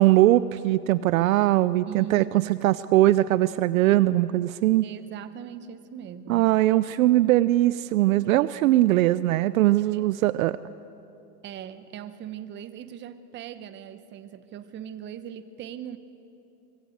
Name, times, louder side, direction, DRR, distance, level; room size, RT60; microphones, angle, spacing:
voice 1, 0.0-4.9 6.3-10.6, right 15 dB, 60° right, 17 dB, 0.6 m, -21 dB
voice 2, 1.9-2.7 4.8-6.5 8.6-8.8 9.9-10.0 11.4-16.0, right 9 dB, 25° right, 12 dB, 1.0 m, -40 dB
24.0 x 21.5 x 7.9 m, 2.8 s
hypercardioid pair, 135°, 48 cm